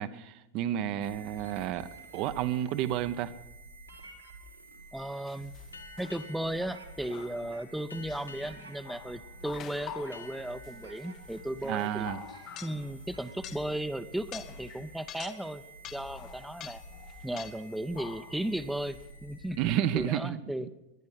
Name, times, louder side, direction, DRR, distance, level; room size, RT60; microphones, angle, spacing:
voice 1, 0.0-3.3 11.6-12.2 19.6-20.4, right 11 dB, 40° right, 11 dB, 0.7 m, -31 dB
sound 1, 1.0-20.2, right 2 dB, 85° right, 2.9 m, -49 dB
voice 2, 4.9-5.5 6.0-12.1 12.6-15.6 15.9-16.8 17.2-19.6 19.9-20.7, right 1 dB, 5° right, 11 dB, 0.7 m, -35 dB
sound 2, 5.3-5.7 6.0-6.5 7.1-7.6 8.1-13.8 14.1-15.6 15.8-18.6 18.8-19.0, left 11 dB, 35° left, 0.8 m, -47 dB
sound 3, 5.7-13.0, left 3 dB, 80° left, 1.1 m, -53 dB
20.0 x 11.0 x 5.7 m, 1.0 s
figure-of-eight pair, 90°, 0 cm